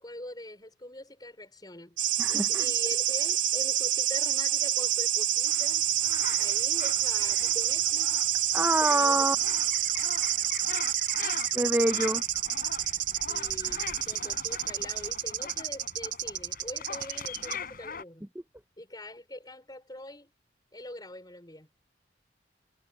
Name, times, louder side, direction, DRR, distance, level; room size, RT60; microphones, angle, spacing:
voice 1, 0.0-2.0 2.3-5.9 6.4-8.2 8.9-9.2 13.3-18.3 18.8-20.3 20.7-21.7, left 1 dB, 20° left, 4.8 m, -43 dB
sound 1, 2.0-17.5, right 12 dB, 75° right, 1.3 m, -28 dB
voice 2, 2.2-2.7 8.5-9.4 11.5-12.2, right 1 dB, 10° right, 0.6 m, -26 dB
sound 2, 5.4-18.0, left 6 dB, 50° left, 4.8 m, -42 dB
head